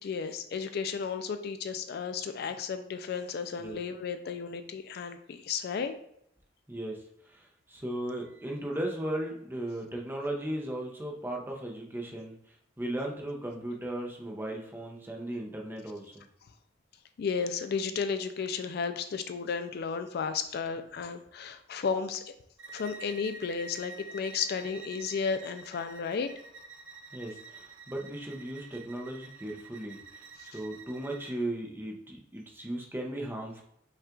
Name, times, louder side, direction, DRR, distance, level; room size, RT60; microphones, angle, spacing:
voice 1, 0.0-5.9 17.2-22.3 22.7-26.3 30.4-30.6, left 5 dB, 55° left, 9 dB, 0.4 m, -33 dB
voice 2, 6.7-12.3 12.8-16.3 27.1-33.6, right 1 dB, 10° right, 0 dB, 0.7 m, -37 dB
Bowed string instrument, 22.6-31.4, right 3 dB, 90° right, 0.6 m, -48 dB
5.5 x 2.4 x 3.7 m, 0.74 s
head